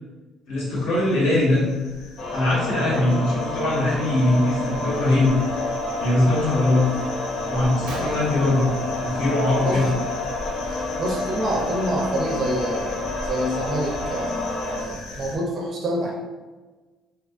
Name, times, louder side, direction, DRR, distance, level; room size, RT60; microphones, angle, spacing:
voice 1, 0.5-1.6 2.3-5.4 6.0-6.9 7.5-8.7 9.0-9.9, left 2 dB, 65° left, -6 dB, 1.0 m, -21 dB
sound 1, 0.6-15.4, left 2 dB, 85° left, 0.5 m, -39 dB
sound 2, 2.2-14.8, left 2 dB, 40° left, 0.5 m, -29 dB
Gunshot gunfire, 7.9-9.5 9.8-10.2 10.4-10.6 11.4-11.6 12.2-12.3 12.7-14.3, right 1 dB, 85° right, 0.5 m, -40 dB
voice 2, 11.0-16.2, right 1 dB, 30° right, -2 dB, 0.4 m, -27 dB
2.4 x 2.3 x 2.4 m, 1.3 s
cardioid pair, 175°, 0 cm